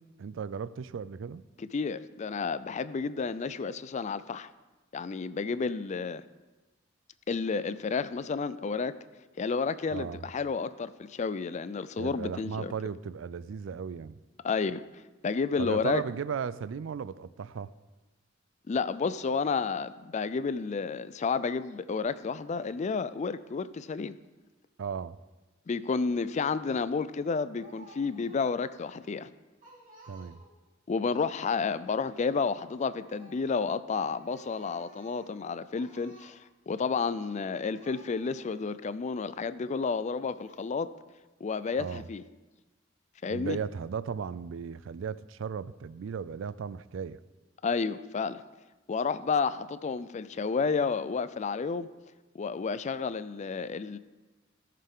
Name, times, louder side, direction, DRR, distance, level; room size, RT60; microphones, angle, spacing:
voice 1, 0.0-1.4 9.9-10.3 12.0-14.2 15.6-17.7 24.8-25.2 30.1-30.4 41.8-42.0 43.3-47.2, right 6 dB, 75° right, 18 dB, 0.4 m, -36 dB
voice 2, 1.6-4.5 4.9-6.2 7.3-8.9 9.4-12.7 14.4-14.8 15.2-16.0 18.7-24.1 25.7-29.3 30.9-36.4 36.7-40.9 41.4-42.2 43.2-43.6 47.6-48.4 48.9-51.9 52.3-54.0, left 5 dB, 35° left, 15 dB, 0.4 m, -31 dB
Speech, 27.6-28.7 29.1-29.2 29.6-30.7 32.9-33.5 33.9-35.4 35.7-36.3 37.2-37.3 37.6-38.7 39.2-39.4 40.3-40.8 41.5-42.0, right 2 dB, 45° right, 2.6 m, -55 dB
17.5 x 6.7 x 3.6 m, 1.2 s
head